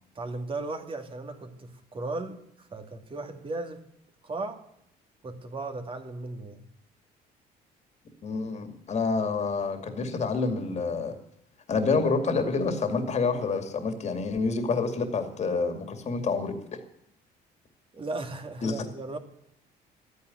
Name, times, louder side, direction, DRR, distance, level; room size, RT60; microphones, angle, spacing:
voice 1, 0.1-3.8 4.2-4.6 5.2-6.7 17.9-19.2, right 2 dB, 30° right, 6 dB, 2.3 m, -36 dB
voice 2, 8.2-11.2 11.7-16.6 18.6-18.7, left 4 dB, 40° left, 7 dB, 2.4 m, -28 dB
13.0 x 9.6 x 9.5 m, 0.75 s
cardioid pair, 110°, 17 cm